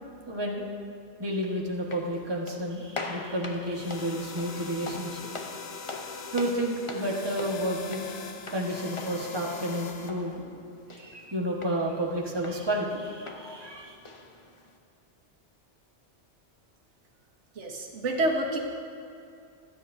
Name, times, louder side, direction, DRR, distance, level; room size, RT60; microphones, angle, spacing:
voice 1, 0.3-0.6 1.2-5.2 6.3-8.1 8.5-10.4 10.9-14.0, right 1 dB, 20° right, -2 dB, 1.4 m, -31 dB
sound 1, 1.7-14.8, left 3 dB, 30° left, 0.7 m, -43 dB
sound 2, 3.7-10.1, left 5 dB, 65° left, 1.0 m, -42 dB
voice 2, 17.5-18.6, right 1 dB, 80° right, 0 dB, 1.6 m, -28 dB
26.0 x 9.4 x 2.7 m, 2.6 s
omnidirectional pair, 1.2 m